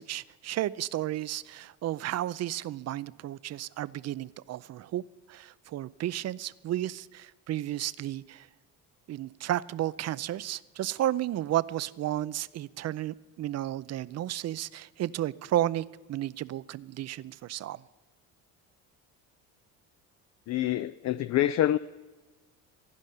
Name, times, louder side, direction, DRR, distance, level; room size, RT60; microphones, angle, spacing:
voice 1, 0.0-5.0 5.3-8.5 9.1-17.8, right 13 dB, 45° right, 0.5 m, -33 dB
voice 2, 20.5-21.8, left 13 dB, 45° left, 0.4 m, -26 dB
16.0 x 5.3 x 10.0 m
supercardioid pair, 80°, 38 cm